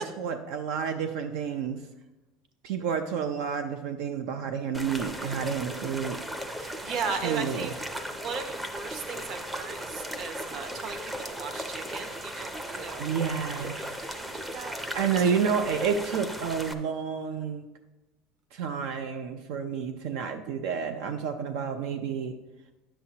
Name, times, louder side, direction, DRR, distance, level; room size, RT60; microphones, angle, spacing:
voice 1, 0.0-1.8 2.6-6.2 7.1-7.7 13.0-14.0 14.9-17.7 18.5-22.4, right 6 dB, 70° right, 7 dB, 0.6 m, -30 dB
sound 1, 4.7-16.7, right 1 dB, 10° right, 0.6 m, -37 dB
voice 2, 6.6-7.7 8.1-13.8 14.1-15.3, right 5 dB, 45° right, 8 dB, 0.9 m, -37 dB
9.8 x 7.6 x 2.9 m, 1.1 s
cardioid pair, 155°, 0 cm